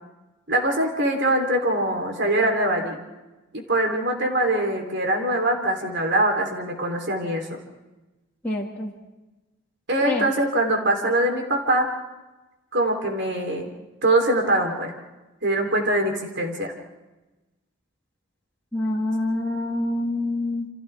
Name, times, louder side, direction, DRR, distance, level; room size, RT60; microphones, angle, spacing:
voice 1, 0.5-3.0 3.5-7.6 9.9-11.9 12.7-13.7 14.0-15.0 15.4-16.7, right 1 dB, 55° right, 2 dB, 3.5 m, -23 dB
voice 2, 8.4-8.9 10.0-10.3 18.7-20.7, left 1 dB, 10° left, -5 dB, 2.2 m, -26 dB
29.5 x 28.0 x 3.5 m, 1.1 s
head